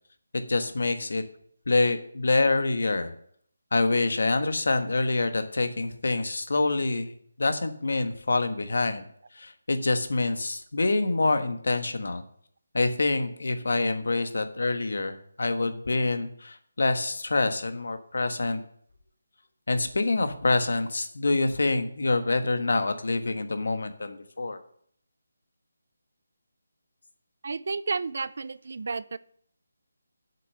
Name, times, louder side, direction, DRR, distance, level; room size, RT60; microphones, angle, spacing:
voice 1, 0.5-1.2 1.7-3.1 3.7-7.1 7.4-9.0 9.4-12.2 12.7-18.6 19.7-24.6, left 3 dB, 70° left, 8 dB, 1.4 m, -26 dB
voice 2, 27.4-29.2, right 4 dB, 50° right, 18 dB, 0.5 m, -31 dB
7.6 x 6.4 x 7.7 m, 0.63 s
figure-of-eight pair, 175°, 0 cm